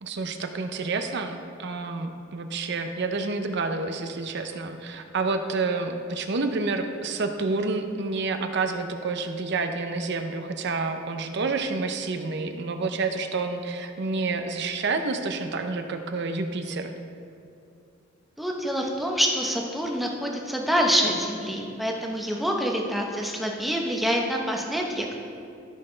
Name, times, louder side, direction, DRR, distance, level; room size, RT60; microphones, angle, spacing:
voice 1, 0.0-16.9, right 3 dB, 60° right, 6 dB, 0.6 m, -29 dB
voice 2, 18.4-25.1, equal, ahead, 0 dB, 0.9 m, -26 dB
14.0 x 6.5 x 3.3 m, 2.5 s
head